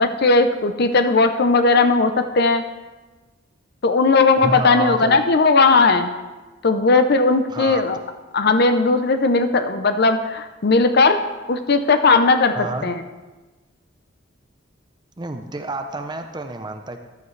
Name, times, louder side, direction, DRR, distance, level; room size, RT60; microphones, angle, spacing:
voice 1, 0.0-2.6 3.8-6.1 6.6-8.0 8.3-11.2 11.5-12.5 12.8-13.0, left 3 dB, 55° left, 9 dB, 0.6 m, -17 dB
voice 2, 4.4-5.2 7.5-7.8 12.5-12.9 15.2-17.0, right 2 dB, 20° right, 6 dB, 0.6 m, -29 dB
14.5 x 10.5 x 3.2 m, 1.2 s
head